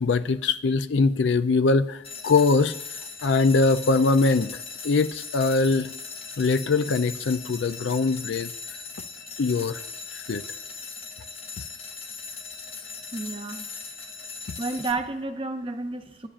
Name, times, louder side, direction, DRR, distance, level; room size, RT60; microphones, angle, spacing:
voice 1, 0.0-2.7 3.2-5.9 6.4-8.5 9.4-9.8 10.1-10.4 14.5-14.6, left 3 dB, 60° left, 13 dB, 0.4 m, -22 dB
sound 1, 2.0-14.9, left 4 dB, 30° left, 0.8 m, -39 dB
voice 2, 13.1-13.7 14.6-16.3, right 3 dB, 25° right, 6 dB, 0.7 m, -31 dB
22.5 x 10.0 x 2.5 m, 0.86 s
head